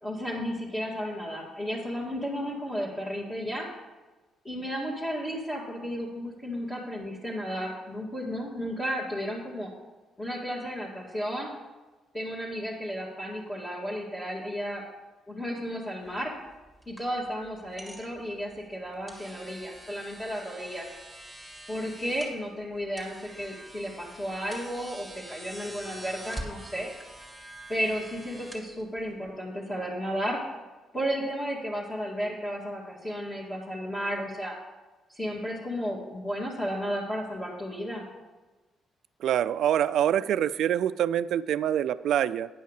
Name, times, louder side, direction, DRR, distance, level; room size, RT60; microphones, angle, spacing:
voice 1, 0.0-3.7 4.4-9.7 10.2-11.5 12.1-14.8 15.3-16.3 16.9-20.9 21.7-26.9 27.7-30.4 30.9-34.6 35.1-38.0, equal, 20° left, -5 dB, 2.0 m, -33 dB
sound 1, 16.0-29.3, right 1 dB, ahead, 2.2 m, -46 dB
voice 2, 39.2-42.5, right 10 dB, 75° right, 15 dB, 0.3 m, -25 dB
9.9 x 5.4 x 6.6 m, 1.2 s
cardioid pair, 90°, 0 cm